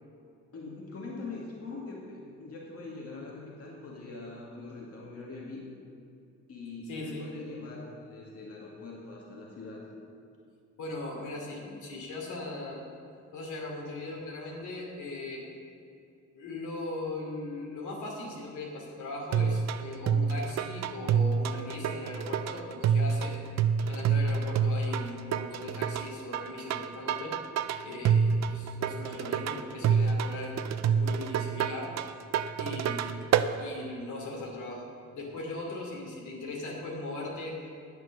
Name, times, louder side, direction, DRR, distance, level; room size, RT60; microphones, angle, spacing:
voice 1, 0.5-5.6 6.5-9.8, left 3 dB, 50° left, -4 dB, 2.1 m, -42 dB
voice 2, 6.9-7.3 10.8-12.8 13.3-15.4 16.3-23.5 23.8-27.4 27.8-32.0 32.6-34.8 35.1-37.6, left 2 dB, 75° left, -2 dB, 2.8 m, -39 dB
sound 1, 19.3-33.5, right 7 dB, 60° right, 0.6 m, -27 dB
10.0 x 7.8 x 6.5 m, 2.5 s
cardioid pair, 90°, 30 cm